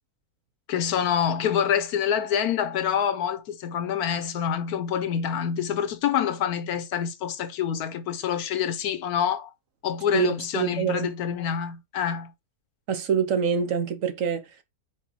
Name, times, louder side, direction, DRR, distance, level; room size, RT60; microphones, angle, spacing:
voice 1, 0.7-9.5 9.8-12.3, left 8 dB, 80° left, 1.2 m, -26 dB
voice 2, 10.1-11.1 12.9-14.4, right 7 dB, 65° right, 1.3 m, -25 dB
5.1 x 4.7 x 4.2 m
omnidirectional pair, 1.6 m